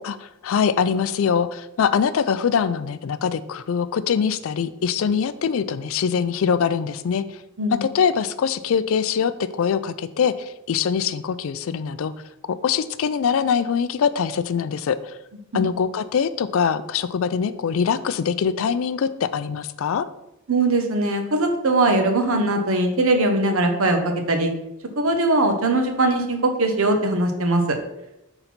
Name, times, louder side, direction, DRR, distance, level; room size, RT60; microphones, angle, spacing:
voice 1, 0.4-7.2 7.8-12.1 12.5-15.2 15.5-20.1, left 7 dB, 65° left, 14 dB, 0.3 m, -23 dB
voice 2, 20.5-24.5 25.0-27.8, right 2 dB, 70° right, 4 dB, 0.9 m, -20 dB
5.8 x 3.9 x 4.2 m, 0.88 s
head